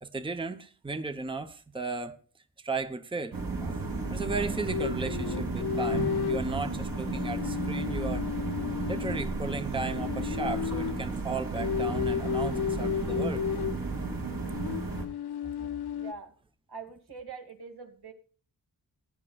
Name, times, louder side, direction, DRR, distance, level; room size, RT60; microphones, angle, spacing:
voice 1, 0.0-2.1 2.6-8.2 8.9-13.4 15.4-15.7, right 3 dB, 15° right, 9 dB, 0.8 m, -35 dB
sound 1, 3.3-15.0, right 3 dB, 60° right, 2.4 m, -33 dB
sound 2, 4.7-6.5 7.0-9.3 9.9-11.1 11.6-13.8 14.5-16.1, left 9 dB, 75° left, 0.5 m, -33 dB
voice 2, 15.9-16.3 16.7-18.1, right 4 dB, 80° right, 3 dB, 2.3 m, -43 dB
19.5 x 9.8 x 2.3 m, 0.39 s
wide cardioid pair, 115°, 39 cm